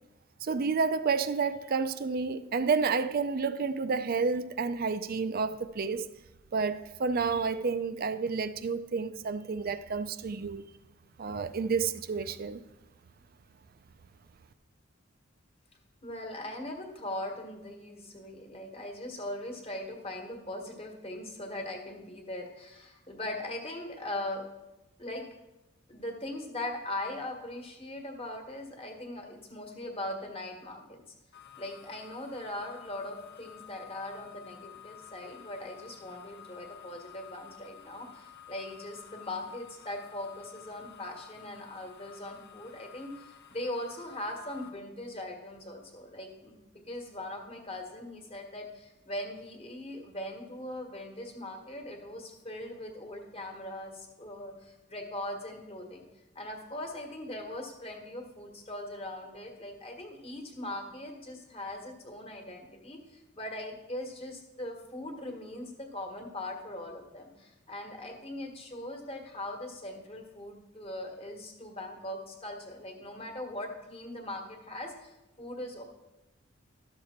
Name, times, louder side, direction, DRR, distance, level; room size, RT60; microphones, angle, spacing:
voice 1, 0.4-6.1 6.5-10.6 11.2-12.6, right 5 dB, 45° right, 0.4 m, -30 dB
voice 2, 16.0-24.5 25.0-25.2 25.9-31.0 31.6-56.0 56.3-75.8, left 1 dB, 30° left, 1.4 m, -40 dB
sound 1, 31.3-44.7, left 10 dB, 55° left, 0.8 m, -52 dB
12.0 x 6.6 x 4.3 m
head